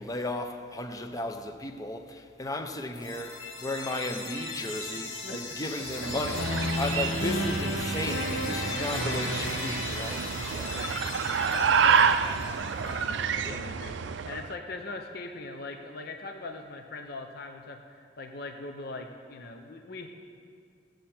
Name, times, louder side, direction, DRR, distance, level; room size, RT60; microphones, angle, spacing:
voice 1, 0.0-10.8 12.2-12.4 13.4-13.6, left 2 dB, 20° left, 0.7 m, -35 dB
sound 1, 2.9-12.9, left 1 dB, 85° left, 2.0 m, -34 dB
sound 2, 5.9-14.5, right 6 dB, 70° right, 0.4 m, -29 dB
voice 2, 11.5-20.1, left 3 dB, 55° left, 0.7 m, -41 dB
17.0 x 7.8 x 4.4 m
head